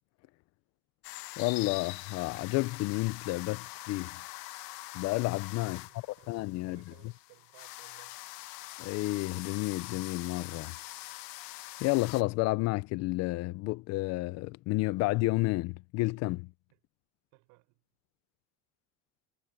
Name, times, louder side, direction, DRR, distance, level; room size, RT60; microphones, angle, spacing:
sound 1, 1.0-12.2, left 20 dB, 75° left, 1.0 m, -44 dB
voice 1, 1.4-4.2 4.9-5.9 6.3-6.9 8.8-10.7 11.8-16.5, left 21 dB, 50° left, 0.5 m, -31 dB
voice 2, 5.6-8.2 16.7-16.8 17.3-17.8, right 27 dB, 85° right, 6.6 m, -61 dB
cardioid pair, 175°, 33 cm